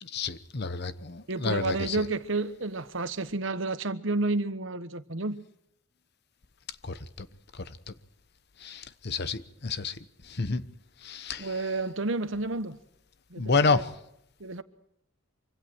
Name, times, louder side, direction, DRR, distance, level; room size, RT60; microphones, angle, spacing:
voice 1, 0.0-2.0 6.8-7.3 7.6-7.7 8.6-10.0 10.3-10.6 11.0-11.5 13.4-13.9, left 4 dB, 55° left, 1.0 m, -29 dB
voice 2, 1.3-5.4 11.4-12.8 13.3-13.8 14.4-14.6, right 3 dB, 65° right, 1.3 m, -31 dB
25.0 x 25.0 x 4.6 m
head